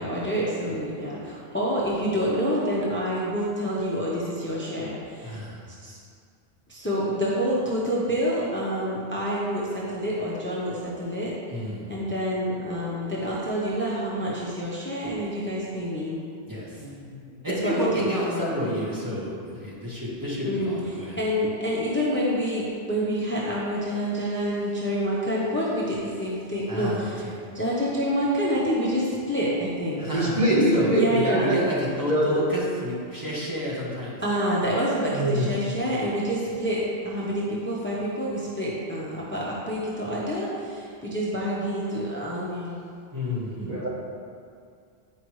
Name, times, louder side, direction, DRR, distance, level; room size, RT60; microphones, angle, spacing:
voice 1, 0.0-5.4 5.8-6.0 6.7-11.3 11.9-16.2 17.5-18.5 20.5-20.8 21.2-27.3 27.5-30.1 30.9-31.5 34.2-42.8, equal, 10° left, -6 dB, 0.9 m, -27 dB
voice 2, 5.2-5.6 11.5-11.9 16.5-16.9 17.4-21.2 26.7-27.3 30.0-30.9 31.4-34.2 43.1-43.8, equal, 20° right, -8 dB, 1.7 m, -30 dB
voice 3, 30.1-31.6 32.1-32.4 35.1-35.5 43.6-43.9, equal, 45° right, -7 dB, 1.4 m, -23 dB
9.9 x 5.1 x 3.2 m, 2.3 s
omnidirectional pair, 1.1 m